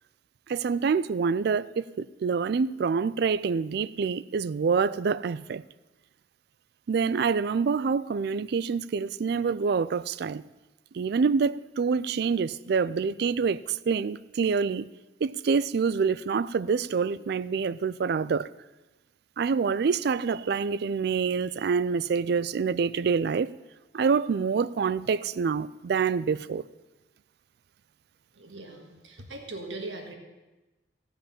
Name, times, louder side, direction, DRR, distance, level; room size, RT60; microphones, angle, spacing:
voice 1, 0.5-5.6 6.9-10.4 10.9-14.9 15.2-18.5 19.4-23.5 23.9-26.6, right 5 dB, 55° right, 0.3 m, -26 dB
voice 2, 28.3-30.1, right 2 dB, 80° right, 1.7 m, -40 dB
15.0 x 5.2 x 8.6 m
head